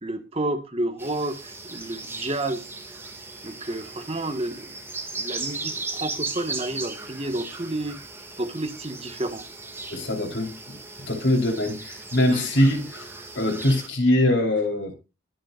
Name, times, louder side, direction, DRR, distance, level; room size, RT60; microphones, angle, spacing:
voice 1, 0.0-2.7 3.4-4.8 5.2-8.0 8.4-9.4 12.3-12.5, right 1 dB, 30° right, 6 dB, 1.8 m, -30 dB
sound 1, 1.0-13.9, right 3 dB, 10° right, 2.4 m, -37 dB
voice 2, 9.9-10.8 11.1-13.1 13.3-15.0, left 1 dB, 60° left, 3 dB, 4.4 m, -23 dB
22.5 x 7.7 x 2.6 m, 0.28 s
head